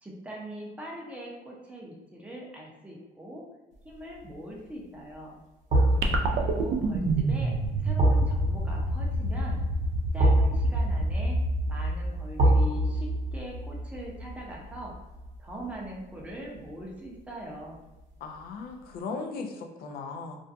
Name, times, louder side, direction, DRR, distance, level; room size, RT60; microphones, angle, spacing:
voice 1, 0.0-3.4 3.8-5.4 6.3-7.5 7.8-9.6 10.1-11.4 11.7-14.9 15.4-17.8, right 1 dB, 5° right, -3 dB, 0.6 m, -41 dB
sound 1, 3.9-4.3 5.7-16.7 17.0-17.2, right 1 dB, 45° right, 0.7 m, -28 dB
voice 2, 5.7-6.7 18.2-20.4, left 4 dB, 65° left, 4 dB, 0.4 m, -38 dB
sound 2, 6.0-12.5, right 2 dB, 65° right, 0.4 m, -28 dB
2.5 x 2.2 x 2.5 m, 1.1 s
cardioid pair, 110°, 17 cm